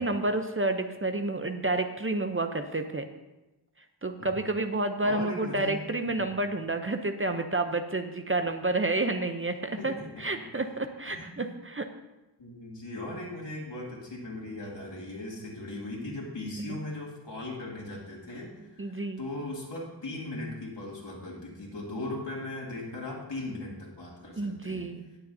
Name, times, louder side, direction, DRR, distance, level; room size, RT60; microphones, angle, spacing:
voice 1, 0.0-3.1 4.0-9.9 10.2-11.9 18.8-19.2 24.4-25.1, right 2 dB, 30° right, 6 dB, 0.7 m, -30 dB
voice 2, 5.0-5.8 6.0-6.2 9.8-10.5 11.0-11.4 12.4-24.9, left 2 dB, 75° left, -4 dB, 2.8 m, -38 dB
18.5 x 6.9 x 2.7 m, 1.0 s
wide cardioid pair, 85°, 44 cm